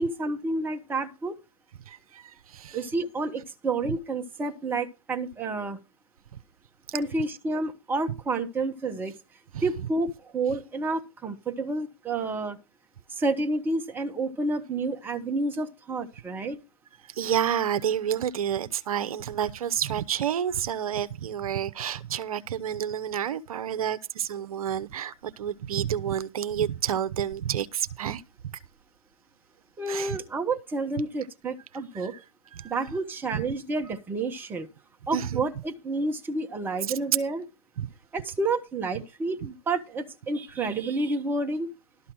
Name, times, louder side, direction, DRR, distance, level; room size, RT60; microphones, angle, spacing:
voice 1, 0.0-1.4 2.7-5.8 6.9-9.1 9.6-12.6 13.1-16.6 29.8-32.1 32.6-34.7 35.1-37.4 38.1-41.7, right 3 dB, 10° right, 1.1 m, -29 dB
voice 2, 1.9-2.8 9.5-9.6 17.1-28.2 29.9-30.2 31.9-32.1 32.5-32.7 33.3-33.4 35.1-35.4 37.8-37.9, right 9 dB, 65° right, 0.9 m, -29 dB
12.5 x 5.6 x 6.2 m
hypercardioid pair, 130°, 20 cm